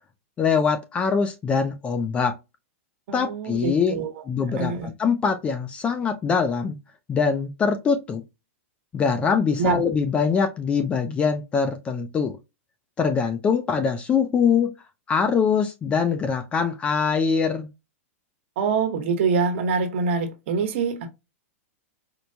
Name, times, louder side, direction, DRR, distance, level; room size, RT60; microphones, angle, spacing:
voice 1, 0.4-2.3 3.1-4.0 4.3-6.8 7.1-8.2 8.9-12.4 13.0-14.7 15.1-17.7, left 6 dB, 15° left, 0.4 m, -23 dB
voice 2, 3.1-4.1 4.6-4.9 9.6-9.8 18.6-21.1, right 5 dB, 55° right, 1.1 m, -25 dB
4.4 x 2.2 x 2.7 m
supercardioid pair, 155°, 8 cm